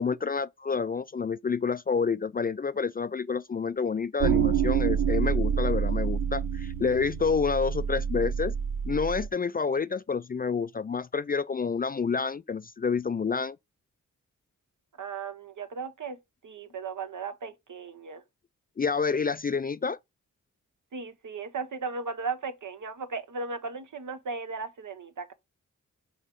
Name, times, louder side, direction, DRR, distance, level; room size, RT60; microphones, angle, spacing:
voice 1, 0.0-8.5 8.9-13.6 18.8-20.0, left 5 dB, 30° left, 0.3 m, -28 dB
sound 1, 4.2-9.3, right 7 dB, 85° right, 0.7 m, -27 dB
voice 2, 15.0-18.2 20.9-25.3, right 4 dB, 70° right, 1.2 m, -36 dB
5.5 x 3.5 x 5.3 m
cardioid pair, 50°, 32 cm